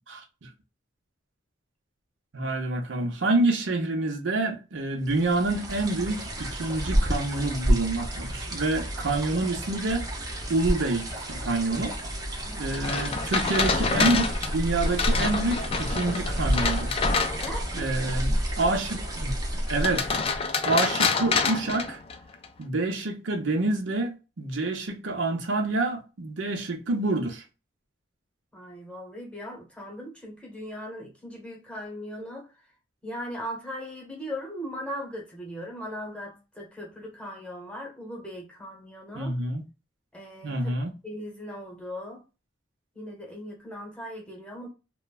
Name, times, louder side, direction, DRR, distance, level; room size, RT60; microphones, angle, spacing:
voice 1, 0.1-0.5 2.3-10.1 10.5-12.0 12.6-16.9 17.7-20.1 20.6-22.0 22.6-27.4 39.1-39.6 40.4-40.9, right 2 dB, 75° right, 0.7 m, -27 dB
sound 1, 5.1-20.5, equal, 20° right, 0.6 m, -30 dB
voice 2, 12.4-12.9 17.4-18.8 28.5-32.5 33.0-39.3 40.1-40.7 41.0-42.2 42.9-44.7, equal, 5° left, 1.0 m, -39 dB
sound 2, 12.7-17.8 19.7-22.5, left 5 dB, 30° left, 0.3 m, -27 dB
3.1 x 2.2 x 2.2 m
head